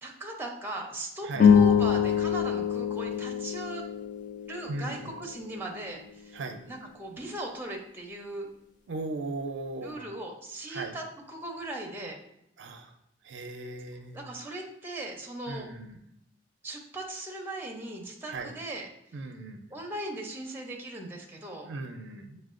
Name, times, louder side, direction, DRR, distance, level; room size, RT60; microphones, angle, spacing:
voice 1, 0.0-3.8 4.5-6.4 6.6-8.5 9.8-12.2 14.1-15.7 16.6-18.9 19.7-21.7, right 1 dB, 10° right, 0 dB, 0.5 m, -38 dB
sound 1, 1.4-5.9, left 7 dB, 45° left, 0.4 m, -25 dB
voice 2, 4.7-5.1 6.3-6.6 8.9-10.1 10.7-11.0 12.6-12.9 13.2-14.2 15.5-16.0 18.3-18.6 19.1-19.6 21.6-22.4, right 2 dB, 75° right, 6 dB, 0.4 m, -37 dB
6.4 x 2.2 x 2.4 m, 0.77 s
head